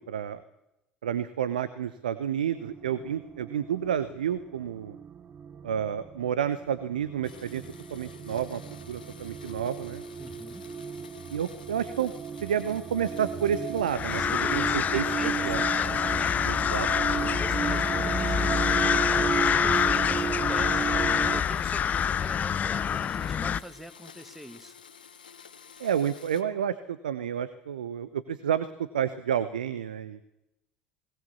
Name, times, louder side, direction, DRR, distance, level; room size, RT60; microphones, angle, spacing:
voice 1, 0.1-0.4 1.0-5.0 5.6-7.6 7.9-8.6 8.9-10.0 11.3-12.1 12.4-15.0 15.4-15.6 16.4-17.2 25.8-30.2, right 9 dB, 75° right, 15 dB, 0.9 m, -30 dB
sound 1, 2.5-21.4, right 7 dB, 35° right, 0.9 m, -35 dB
Domestic sounds home sounds, 7.2-26.4, left 7 dB, 80° left, 1.4 m, -51 dB
voice 2, 10.2-10.6 14.2-16.4 17.1-24.8, equal, 5° right, 10 dB, 1.8 m, -44 dB
sound 2, 13.9-23.6, left 8 dB, 35° left, 0.7 m, -26 dB
20.5 x 19.5 x 7.1 m, 0.88 s
figure-of-eight pair, 65°, 5 cm